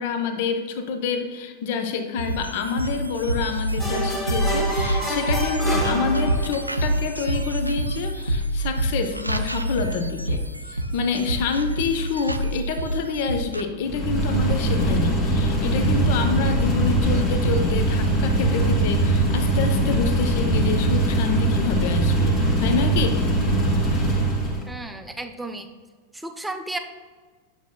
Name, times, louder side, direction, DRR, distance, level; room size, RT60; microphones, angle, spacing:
voice 1, 0.0-23.2, left 5 dB, 50° left, 7 dB, 0.6 m, -27 dB
sound 1, 2.2-13.6, right 1 dB, 90° right, 0.4 m, -27 dB
sound 2, 3.8-6.7, equal, 15° left, 1.8 m, -28 dB
sound 3, 13.8-24.7, right 1 dB, 35° left, 1.7 m, -21 dB
voice 2, 24.7-25.7 26.1-26.8, right 2 dB, 5° right, 6 dB, 0.5 m, -33 dB
9.0 x 6.4 x 2.2 m, 1.5 s
figure-of-eight pair, 90°, 0 cm